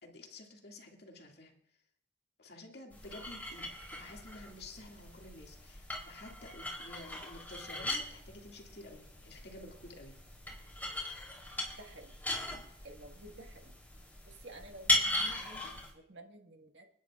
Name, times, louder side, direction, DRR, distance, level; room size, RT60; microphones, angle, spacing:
voice 1, 0.0-1.5 2.4-10.1, left 2 dB, 65° left, 1 dB, 2.4 m, -51 dB
sound 1, 2.9-15.9, left 1 dB, 10° left, 3.7 m, -38 dB
voice 2, 11.8-12.2 12.8-13.7 14.3-16.9, right 1 dB, 90° right, 2 dB, 1.7 m, -52 dB
28.0 x 10.5 x 2.5 m, 0.67 s
head